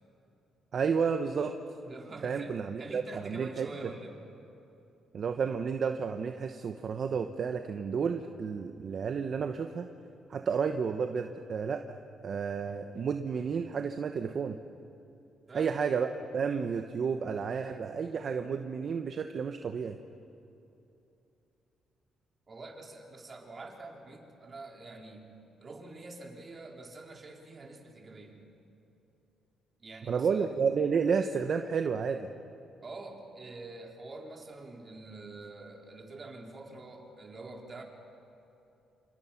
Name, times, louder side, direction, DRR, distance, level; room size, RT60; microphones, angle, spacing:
voice 1, 0.7-1.6 2.2-3.7 5.1-9.9 10.3-12.0 12.2-14.6 15.5-20.0 30.1-32.3, right 6 dB, 55° right, 7 dB, 1.1 m, -31 dB
voice 2, 1.8-4.2 15.5-15.7 22.5-28.5 29.8-30.6 32.8-37.8, right 2 dB, 35° right, 1 dB, 3.8 m, -46 dB
27.5 x 26.5 x 6.0 m, 2.8 s
cardioid pair, 90°, 0 cm